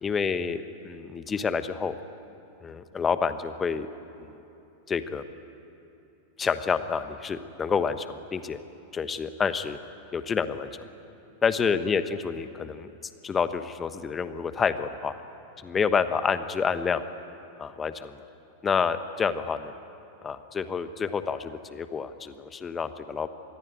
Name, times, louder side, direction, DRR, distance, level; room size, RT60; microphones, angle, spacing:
voice 1, 0.0-1.9 2.6-3.9 4.9-5.2 6.4-8.6 8.9-9.8 10.1-10.7 11.4-12.9 13.2-15.2 15.6-17.0 17.6-18.2 18.6-19.7 20.2-23.3, left 6 dB, 20° left, 11 dB, 1.2 m, -28 dB
26.5 x 21.5 x 9.2 m, 2.9 s
figure-of-eight pair, 90°, 0 cm